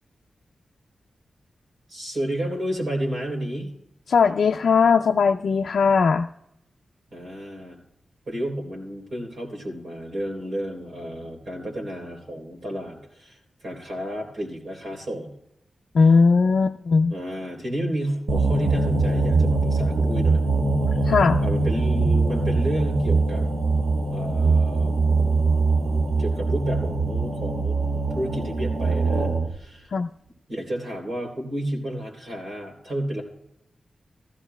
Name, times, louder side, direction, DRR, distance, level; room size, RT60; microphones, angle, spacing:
voice 1, 1.9-3.7 7.1-7.8 8.3-15.3 17.1-20.4 21.4-23.5 24.1-24.9 26.2-27.8 28.1-29.9 30.5-33.2, right 1 dB, 55° right, 1 dB, 3.2 m, -31 dB
voice 2, 4.1-6.3 15.9-17.1 21.1-21.4 29.9-30.1, left 5 dB, 70° left, 2 dB, 0.4 m, -18 dB
sound 1, 18.3-29.6, right 3 dB, 70° right, 1.1 m, -22 dB
15.5 x 14.5 x 2.2 m, 0.78 s
wide cardioid pair, 170°, 0 cm